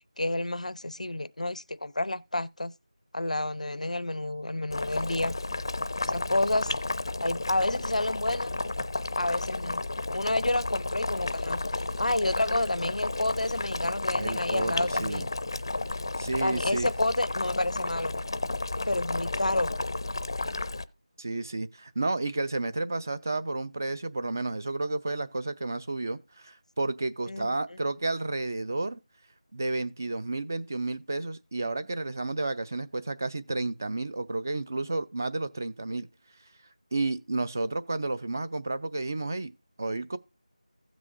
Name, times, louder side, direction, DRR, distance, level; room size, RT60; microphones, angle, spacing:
voice 1, 0.2-2.7 3.1-5.3 6.0-6.7 7.2-8.5 9.2-9.8 10.1-15.3 16.4-18.1 18.8-19.7 27.3-27.8, left 2 dB, 90° left, 0.5 m, -30 dB
Boiling, 4.7-20.8, left 2 dB, 40° left, 0.5 m, -32 dB
sound 1, 10.8-16.0, right 1 dB, 55° right, 1.2 m, -55 dB
voice 2, 14.2-15.3 16.2-16.9 21.2-29.0 29.5-36.1 36.9-39.5 39.8-40.2, right 2 dB, 25° right, 0.4 m, -31 dB
16.0 x 6.2 x 2.5 m
figure-of-eight pair, 175°, 4 cm